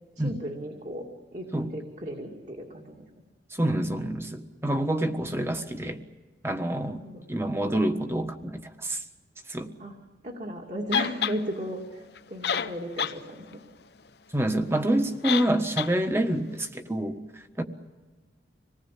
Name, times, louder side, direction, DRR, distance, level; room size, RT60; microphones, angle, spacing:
voice 1, 0.2-1.1 1.3-3.0 6.9-7.2 9.8-10.0 10.2-13.6, equal, 40° right, 1 dB, 2.6 m, -36 dB
voice 2, 3.5-6.0 6.4-7.0 7.3-9.0 9.5-9.7 14.3-17.2 17.6-17.7, right 1 dB, 15° right, 7 dB, 1.4 m, -27 dB
sound 1, 10.9-11.4 12.2-12.3 12.4-13.2 13.5-13.6 15.2-15.5 15.8-15.9, left 8 dB, 60° left, 0.8 m, -27 dB
26.5 x 19.5 x 8.5 m, 1.3 s
head